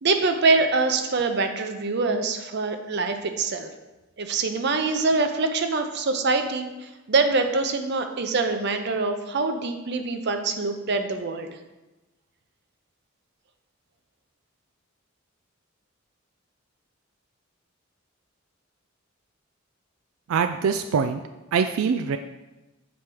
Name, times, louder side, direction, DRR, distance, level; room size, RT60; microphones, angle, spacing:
voice 1, 0.0-3.7 4.2-11.5, right 3 dB, 55° right, 7 dB, 0.7 m, -24 dB
voice 2, 20.3-21.2 21.5-22.2, right 6 dB, 90° right, 8 dB, 0.3 m, -23 dB
7.2 x 4.8 x 4.5 m, 1.1 s
head